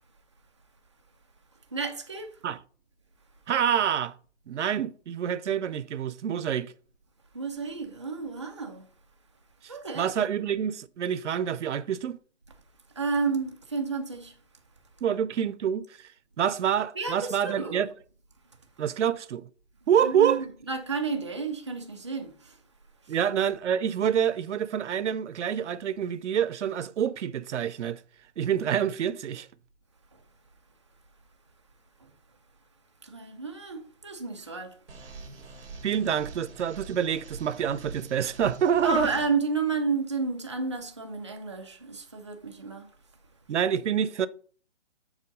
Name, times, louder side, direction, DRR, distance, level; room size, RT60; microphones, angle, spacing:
voice 1, 1.7-2.4 7.3-8.9 9.7-10.1 12.9-14.4 16.9-17.9 20.0-22.6 23.0-23.2 30.1-30.2 32.0-32.1 33.0-34.8 38.8-42.9, right 4 dB, 25° right, 0.5 m, -31 dB
voice 2, 3.5-4.1 4.5-6.7 9.6-12.2 15.0-16.1 16.4-17.9 18.8-19.5 19.9-20.4 23.1-28.0 28.4-29.5 35.8-39.1 43.5-44.3, right 8 dB, 90° right, 0.6 m, -27 dB
sound 1, 34.9-39.3, right 3 dB, 55° right, 2.0 m, -44 dB
7.3 x 3.6 x 5.2 m
hypercardioid pair, 175°, 35 cm